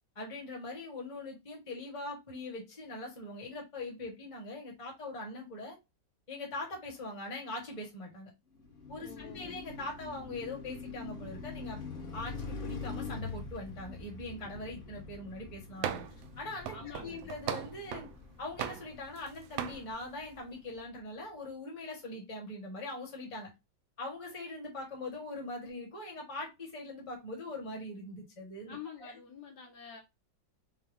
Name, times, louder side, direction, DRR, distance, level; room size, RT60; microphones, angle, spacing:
voice 1, 0.1-5.7 6.3-8.3 8.9-11.8 12.1-16.0 16.4-18.1 18.4-23.5 24.0-29.2, left 2 dB, 20° left, -2 dB, 1.2 m, -42 dB
Car passing by, 8.5-20.8, left 4 dB, 40° left, 0.9 m, -45 dB
voice 2, 9.0-9.6 16.7-17.3 28.7-30.0, left 7 dB, 65° left, 2 dB, 1.3 m, -47 dB
sound 1, 15.8-16.2 16.7-18.1 18.6-19.3 19.6-19.8, right 9 dB, 90° right, 1.4 m, -37 dB
5.3 x 2.2 x 3.4 m, 0.23 s
omnidirectional pair, 2.1 m